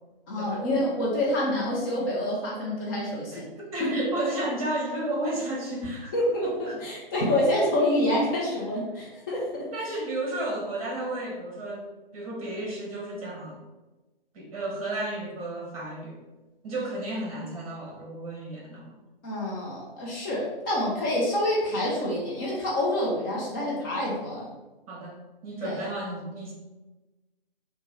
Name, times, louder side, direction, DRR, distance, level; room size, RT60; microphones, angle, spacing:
voice 1, 0.3-3.4 3.8-4.1 6.1-9.7 19.2-24.5 25.6-25.8, left 1 dB, 20° left, -6 dB, 0.7 m, -27 dB
voice 2, 3.3-6.1 6.7-6.8 8.5-8.6 9.7-13.6 14.3-16.2 16.6-18.9 24.9-25.2 25.4-26.5, right 1 dB, 35° right, -2 dB, 1.3 m, -33 dB
4.4 x 2.2 x 4.4 m, 1.1 s
figure-of-eight pair, 135°, 30 cm